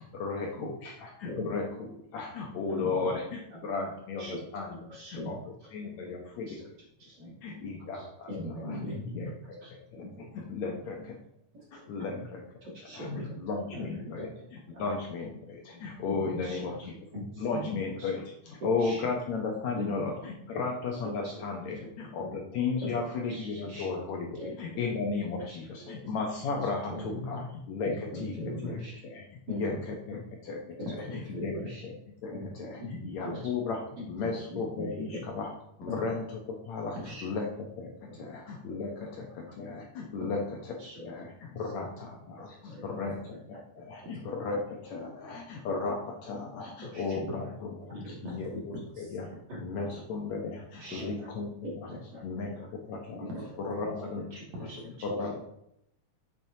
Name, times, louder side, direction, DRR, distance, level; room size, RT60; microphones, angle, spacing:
voice 1, 0.0-4.8 5.1-5.4 5.7-6.6 7.4-8.3 8.6-8.8 9.1-9.3 9.9-10.1 10.3-11.2 11.7-12.4 12.9-16.9 17.4-28.3 28.6-28.8 29.0-30.6 31.4-31.5 31.8-31.9 32.2-32.8 33.1-33.8 34.1-35.5 35.8-37.0 37.2-37.5 37.8-40.4 40.7-40.8 41.0-43.2 43.5-47.7 48.1-48.7 49.1-49.3 49.6-51.5 51.8-51.9 52.2-52.5 52.9-53.2 53.6-54.4 55.0-55.4, left 4 dB, 70° left, 0 dB, 1.9 m, -35 dB
voice 2, 4.8-5.5 5.9-6.1 6.5-6.7 7.0-7.4 7.9-9.3 9.6-9.7 9.9-10.3 10.6-10.8 11.7-12.2 12.6-13.3 13.7-14.5 14.7-14.9 15.7-15.8 16.3-16.7 17.1-18.1 18.6-19.0 19.7-19.9 21.2-21.3 21.8-21.9 22.2-22.3 22.8-23.9 24.3-24.5 25.5-25.6 25.8-26.0 26.9-27.4 27.8-29.0 29.5-29.8 30.1-30.2 31.1-31.8 32.3-32.5 32.7-33.4 34.0-34.9 35.1-35.2 35.9-36.2 37.1-37.2 38.1-38.2 39.0-39.1 40.8-41.1 42.6-43.2 43.8-43.9 46.6-47.3 47.9-48.2 48.5-48.6 49.5-50.0 50.8-51.1 51.6-52.2 53.2-53.3 54.1-54.8, left 1 dB, 30° right, -7 dB, 3.2 m, -40 dB
voice 3, 7.5-7.9 30.9-31.0 37.0-37.1 40.2-40.3 41.6-41.7 43.1-43.2 44.0-44.2 45.3-45.4 48.2-49.2 49.8-49.9 50.9-51.1 53.3-53.8 54.5-55.0, equal, 60° right, -3 dB, 2.9 m, -44 dB
7.5 x 7.1 x 2.8 m, 0.77 s
omnidirectional pair, 3.8 m